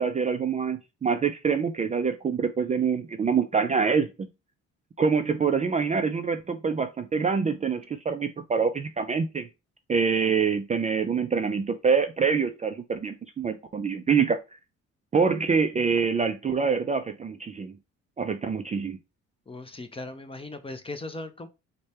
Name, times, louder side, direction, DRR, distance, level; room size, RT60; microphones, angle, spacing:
voice 1, 0.0-4.3 5.0-9.5 9.9-14.4 15.1-17.7 18.2-19.0, right 5 dB, 25° right, 0.3 m, -25 dB
voice 2, 19.5-21.5, left 2 dB, 20° left, 0.6 m, -38 dB
3.2 x 2.2 x 4.2 m
cardioid pair, 90°, 30 cm